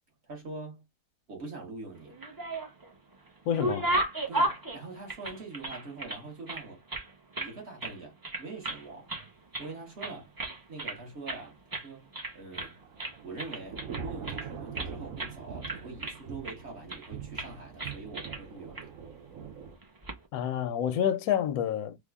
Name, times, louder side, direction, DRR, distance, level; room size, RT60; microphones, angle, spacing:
voice 1, 0.2-0.8 1.3-2.2 4.3-6.8 7.4-9.1 9.6-10.3 10.7-12.8 13.2-18.9, right 3 dB, 50° right, 1.5 m, -43 dB
sound 1, 2.1-2.9 3.3-6.2 6.5-7.5 7.8-8.0 8.2-8.8 9.1-9.7 10.0-11.0 11.3-11.4 11.7-11.9 12.1-12.7 13.0-14.9 15.2-15.4 15.6-16.6 16.9-17.1 17.4-17.5 17.8-18.4 18.8-18.9 19.8-20.2, right 1 dB, 25° right, 0.4 m, -34 dB
voice 2, 3.5-3.9 20.3-22.0, left 9 dB, 85° left, 1.1 m, -28 dB
Thunder / Rain, 12.4-19.8, right 6 dB, 70° right, 1.1 m, -43 dB
3.5 x 2.2 x 3.5 m
omnidirectional pair, 1.5 m